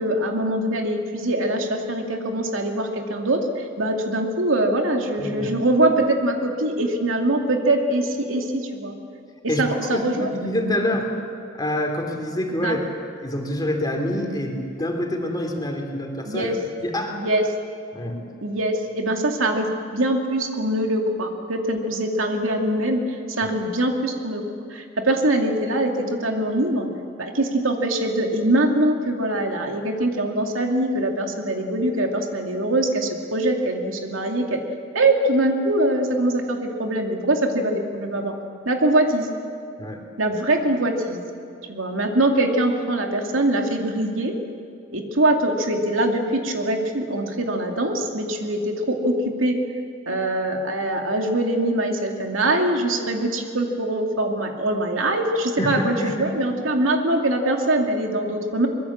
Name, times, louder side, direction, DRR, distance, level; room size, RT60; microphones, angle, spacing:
voice 1, 0.0-8.9 9.6-10.3 12.6-12.8 16.3-16.5 17.1-17.4 18.4-24.4 24.7-26.9 27.2-34.6 34.9-38.3 38.7-39.3 40.2-41.2 41.7-44.3 44.9-49.6 50.1-58.7, right 1 dB, 80° right, 2 dB, 2.5 m, -23 dB
voice 2, 5.2-5.5 9.5-11.1 11.6-12.8 13.2-16.5 16.8-17.2 17.9-18.2 23.4-23.5 39.8-40.0 55.6-56.3, left 1 dB, 20° left, 2 dB, 3.1 m, -26 dB
24.5 x 22.0 x 7.4 m, 2.5 s
head